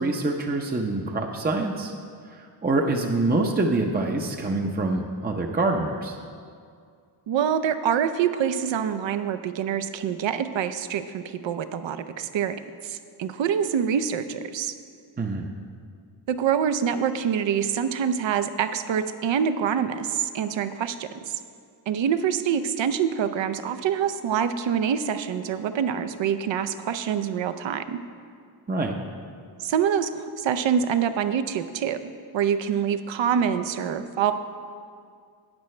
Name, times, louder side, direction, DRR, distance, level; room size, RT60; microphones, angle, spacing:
voice 1, 0.0-1.9 2.3-6.2 15.2-15.5 28.7-29.0, right 2 dB, 20° right, 2 dB, 0.7 m, -25 dB
voice 2, 7.3-12.6 12.8-14.7 16.3-21.3 21.9-28.0 29.6-32.0 32.3-34.3, right 8 dB, 65° right, 11 dB, 0.7 m, -25 dB
12.5 x 8.3 x 3.2 m, 2.2 s
cardioid pair, 60°, 49 cm